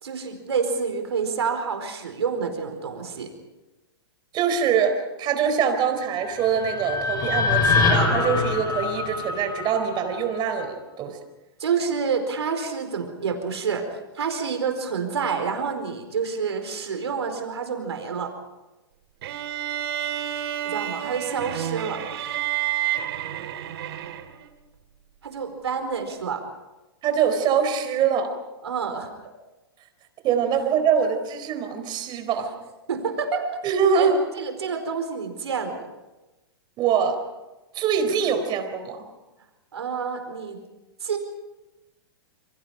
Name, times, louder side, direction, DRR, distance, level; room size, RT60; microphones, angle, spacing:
voice 1, 0.0-3.3 11.6-18.3 20.6-22.0 25.2-26.5 28.6-29.1 32.9-33.4 33.9-34.1 34.3-35.9 39.7-40.6 41.0-41.2, right 6 dB, 85° right, 6 dB, 4.6 m, -28 dB
voice 2, 4.3-11.2 27.0-28.3 30.2-32.5 33.6-34.2 36.8-37.2 37.7-39.0, right 7 dB, 35° right, 7 dB, 4.3 m, -23 dB
sound 1, 6.1-10.3, left 4 dB, 25° left, 5.5 m, -24 dB
sound 2, 19.2-24.5, right 11 dB, 65° right, 2.4 m, -30 dB
27.5 x 24.5 x 5.1 m, 1.1 s
hypercardioid pair, 120°, 14 cm